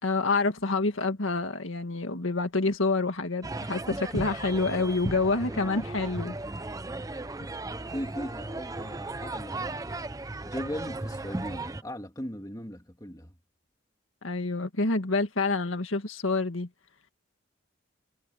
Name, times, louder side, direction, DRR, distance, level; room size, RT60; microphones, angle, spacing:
voice 1, 0.0-6.4 7.4-7.5 14.2-16.7, left 3 dB, 90° left, 1.9 m, -27 dB
sound 1, 3.4-11.8, right 2 dB, 15° right, 0.6 m, -36 dB
voice 2, 5.5-5.9 7.9-10.0 10.4-13.3, equal, 20° left, 2.5 m, -38 dB
head